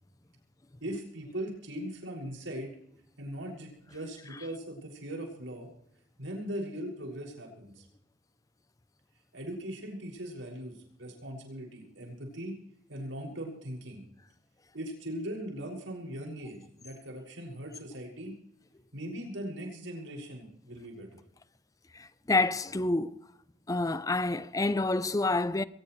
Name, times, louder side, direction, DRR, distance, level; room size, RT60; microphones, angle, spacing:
voice 1, 0.8-2.7 3.2-5.7 6.2-7.9 9.3-12.5 12.9-14.0 14.7-18.3 18.9-21.2, right 1 dB, 90° right, 6.2 m, -40 dB
voice 2, 21.9-23.2 23.7-25.6, left 2 dB, 20° left, 0.5 m, -28 dB
22.0 x 19.5 x 3.2 m
head